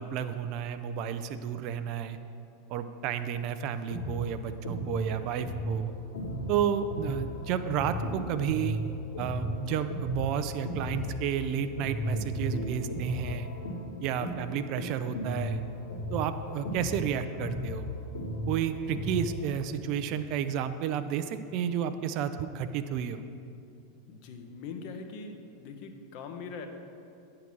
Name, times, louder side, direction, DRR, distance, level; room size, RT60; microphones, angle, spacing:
voice 1, 0.0-2.2 2.7-5.9 6.5-8.8 9.2-13.5 14.0-15.6 16.1-17.9 18.5-23.2, right 8 dB, 45° right, 10 dB, 0.3 m, -31 dB
sound 1, 3.9-11.4 11.8-19.4, equal, 70° left, 1.7 m, -35 dB
voice 2, 24.1-26.7, left 5 dB, 45° left, 5 dB, 0.7 m, -42 dB
9.2 x 3.7 x 6.0 m, 2.5 s
figure-of-eight pair, 85°, 0 cm